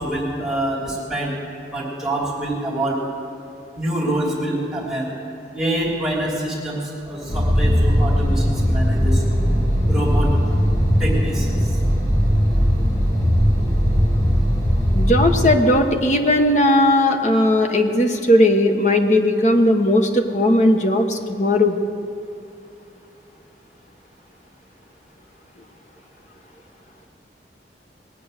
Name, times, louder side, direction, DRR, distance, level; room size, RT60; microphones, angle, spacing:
voice 1, 0.0-1.3 1.7-3.0 3.7-5.1 5.5-9.4 9.9-10.3 11.0-11.8, right 1 dB, 5° right, -7 dB, 3.0 m, -26 dB
sound 1, 7.3-15.6, equal, 20° left, 1.8 m, -18 dB
voice 2, 14.9-21.8, left 1 dB, 40° left, 4 dB, 1.1 m, -17 dB
20.5 x 8.7 x 6.5 m, 2.6 s
head